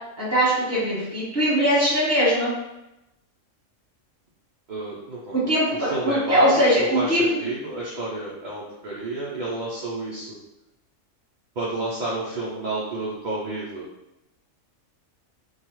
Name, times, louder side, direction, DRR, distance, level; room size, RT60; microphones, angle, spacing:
voice 1, 0.2-2.5 5.3-7.4, equal, 15° right, -7 dB, 1.1 m, -21 dB
voice 2, 4.7-10.3 11.6-13.9, right 2 dB, 55° right, -6 dB, 0.5 m, -30 dB
2.7 x 2.3 x 2.9 m, 0.93 s
omnidirectional pair, 1.3 m